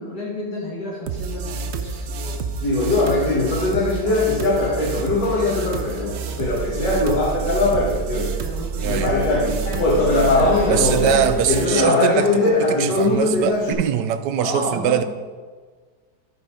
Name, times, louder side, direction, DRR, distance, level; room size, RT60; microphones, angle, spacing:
voice 1, 0.0-2.4 2.8-7.9 8.4-9.8 10.3-11.4 14.4-15.0, left 1 dB, 75° left, -4 dB, 2.1 m, -33 dB
sound 1, 1.1-11.6, right 5 dB, 65° right, 0.6 m, -29 dB
Conversation, 2.6-8.4 8.8-13.7, left 2 dB, 90° left, 2.2 m, -20 dB
voice 2, 8.8-9.1 10.6-15.0, right 9 dB, 85° right, 10 dB, 1.2 m, -22 dB
12.0 x 5.2 x 4.9 m, 1.4 s
omnidirectional pair, 1.8 m